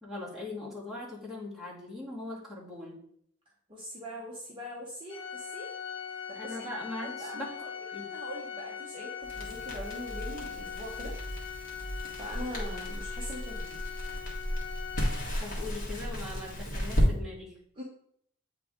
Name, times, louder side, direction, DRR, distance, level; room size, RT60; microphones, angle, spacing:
voice 1, 0.0-3.0 6.3-7.5 7.9-8.1 15.4-17.5, left 2 dB, ahead, -8 dB, 1.9 m, -40 dB
voice 2, 3.7-5.7 6.3-6.7 7.0-7.7 8.1-11.1 12.2-13.8 17.8-17.9, equal, 25° right, -5 dB, 0.8 m, -42 dB
Organ, 5.1-15.7, left 7 dB, 65° left, 0.8 m, -41 dB
Crackle, 9.2-17.1, equal, 40° left, 1.5 m, -33 dB
8.3 x 3.5 x 3.6 m, 0.67 s
head